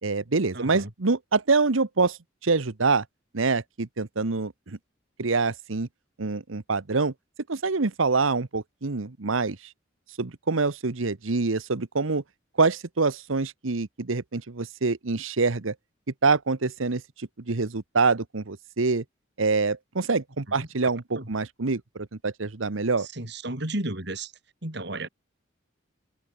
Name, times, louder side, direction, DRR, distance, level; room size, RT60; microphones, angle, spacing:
voice 1, 0.0-2.2 2.4-3.0 3.3-4.8 5.2-5.9 6.2-7.1 7.5-9.6 10.2-12.2 12.6-15.7 16.2-19.0 19.4-23.1, right 4 dB, 90° right, 1.1 m, -25 dB
voice 2, 0.5-0.9 20.6-20.7 21.2-21.3 23.0-24.3 24.6-25.1, right 2 dB, 60° right, 3.8 m, -33 dB
head